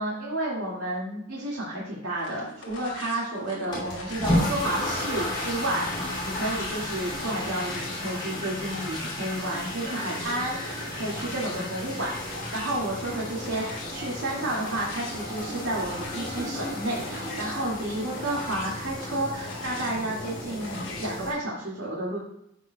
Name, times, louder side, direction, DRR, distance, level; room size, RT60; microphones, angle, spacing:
voice 1, 0.0-22.2, right 1 dB, 85° right, -6 dB, 2.2 m, -31 dB
sound 1, 2.2-21.2, left 2 dB, 65° left, 2.4 m, -42 dB
sound 2, 3.7-21.3, left 1 dB, 25° left, 2.7 m, -33 dB
11.5 x 8.0 x 2.3 m, 0.77 s
head